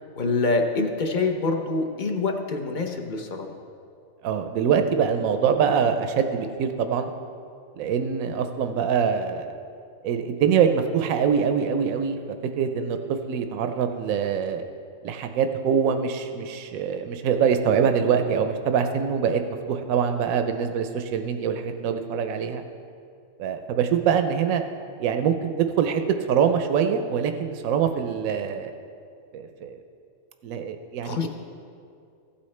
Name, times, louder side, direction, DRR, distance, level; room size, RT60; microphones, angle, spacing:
voice 1, 0.2-3.5 31.0-31.3, left 3 dB, 45° left, 4 dB, 0.8 m, -25 dB
voice 2, 4.2-7.1 7.8-9.5 10.0-12.2 12.6-14.6 15.0-22.6 23.4-24.6 25.0-26.0 26.3-28.7 29.3-29.8 30.4-31.3, right 7 dB, 85° right, 7 dB, 1.0 m, -24 dB
15.0 x 8.5 x 3.2 m, 2.4 s
omnidirectional pair, 1.5 m